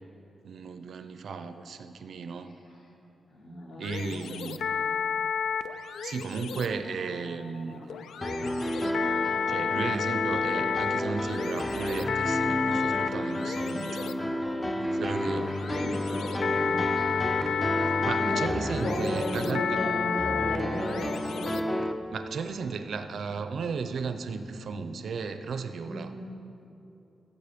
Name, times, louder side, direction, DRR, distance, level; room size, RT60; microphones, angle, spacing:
voice 1, 0.4-2.5 3.8-4.6 6.0-8.0 9.5-14.2 14.8-15.6 17.8-19.8 22.1-26.1, right 5 dB, 55° right, 9 dB, 0.5 m, -35 dB
voice 2, 3.3-4.2 4.6-4.8 7.6-7.9 15.7-17.3 18.2-18.5 18.8-21.5 25.8-26.3, left 1 dB, 70° left, -4 dB, 2.8 m, -36 dB
sound 1, 3.8-21.8, left 7 dB, 90° left, 0.3 m, -32 dB
sound 2, 8.2-21.9, left 1 dB, 10° left, 0.4 m, -31 dB
16.0 x 7.2 x 5.1 m, 2.9 s
wide cardioid pair, 180°, 0 cm